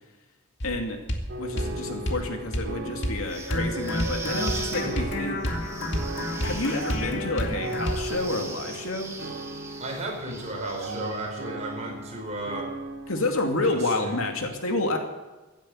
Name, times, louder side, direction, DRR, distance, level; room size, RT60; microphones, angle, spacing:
voice 1, 0.6-1.0 1.4-5.4 6.4-9.2 13.1-15.0, left 2 dB, 85° left, 3 dB, 2.5 m, -29 dB
sound 1, 0.6-0.8 1.1-1.3 1.6-1.7 2.1-2.2 2.5-2.7 3.0-3.2 3.5-8.1, equal, 55° left, 2.2 m, -29 dB
sound 2, 1.3-13.7, right 1 dB, 60° right, 2.3 m, -37 dB
sound 3, 3.2-11.5, right 3 dB, 15° right, 1.8 m, -41 dB
voice 2, 9.8-12.7 14.0-14.1, right 1 dB, 35° right, 0 dB, 4.8 m, -34 dB
16.0 x 10.0 x 8.0 m, 1.2 s
head